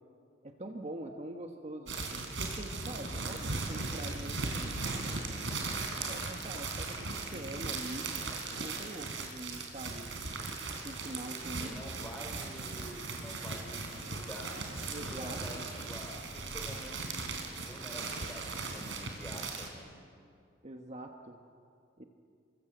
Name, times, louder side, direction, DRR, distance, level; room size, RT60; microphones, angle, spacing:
voice 1, 0.4-4.8 6.1-8.3 8.6-10.2 10.8-11.7 14.9-15.7 20.6-21.4 22.0-22.1, right 1 dB, 35° right, 4 dB, 1.4 m, -44 dB
sound 1, 1.9-19.7, right 3 dB, 75° right, 4.0 m, -38 dB
voice 2, 11.6-14.6 15.1-19.9, equal, 5° left, 1 dB, 4.9 m, -48 dB
30.0 x 24.5 x 8.0 m, 2.4 s
head